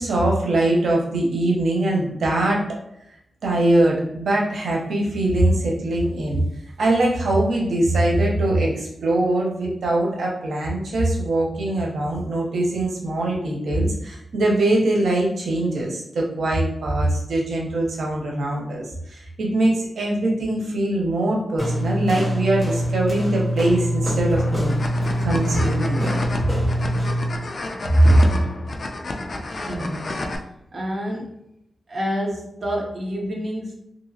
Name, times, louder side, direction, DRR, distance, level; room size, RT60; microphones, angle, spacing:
voice 1, 0.0-2.6 3.4-6.4 6.8-24.7 25.2-26.1, right 1 dB, 85° right, -1 dB, 0.7 m, -22 dB
sound 1, 21.6-27.4, equal, ahead, 1.5 m, -24 dB
sound 2, 24.4-30.4, left 2 dB, 45° left, 0.4 m, -31 dB
voice 2, 27.8-28.4 29.5-30.2 30.7-31.4 31.9-33.8, right 1 dB, 45° right, -2 dB, 0.7 m, -21 dB
2.9 x 2.7 x 2.7 m, 0.78 s
wide cardioid pair, 145°, 0 cm